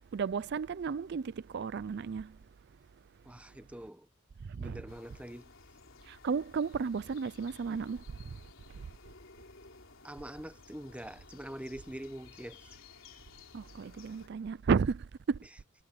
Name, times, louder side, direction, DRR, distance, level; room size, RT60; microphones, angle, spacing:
voice 1, 0.1-2.4 4.4-4.8 6.0-8.4 8.7-8.9 13.5-15.4, right 5 dB, 50° right, 0.4 m, -33 dB
voice 2, 3.2-4.1 4.5-5.5 10.0-12.8, right 1 dB, 5° right, 1.0 m, -44 dB
sound 1, 4.9-14.3, left 3 dB, 65° left, 4.2 m, -56 dB
head